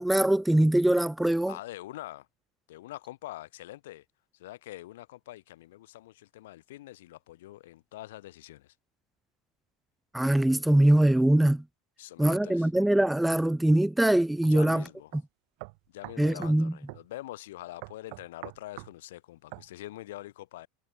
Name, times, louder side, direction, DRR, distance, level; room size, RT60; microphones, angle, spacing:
voice 1, 0.0-1.5 10.1-11.6 12.2-14.8 16.2-16.7, right 1 dB, 5° right, 0.3 m, -22 dB
voice 2, 1.5-2.3 2.7-4.0 4.3-8.7 12.0-12.7 14.5-15.1 15.9-20.7, left 16 dB, 70° left, 5.7 m, -44 dB
sound 1, 14.4-14.6 15.1-15.2 15.6-16.6 16.9-17.1 17.8-18.9 19.5-19.7, right 33 dB, 60° right, 1.1 m, -43 dB
hypercardioid pair, 90°, 0 cm